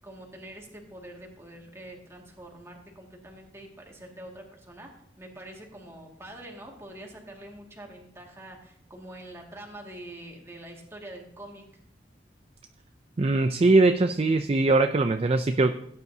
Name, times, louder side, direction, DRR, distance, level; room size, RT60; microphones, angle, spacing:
voice 1, 0.0-11.6, right 1 dB, 15° right, 0 dB, 2.0 m, -45 dB
voice 2, 13.2-15.7, right 2 dB, 35° right, 8 dB, 0.4 m, -21 dB
16.5 x 9.3 x 2.7 m, 0.74 s
head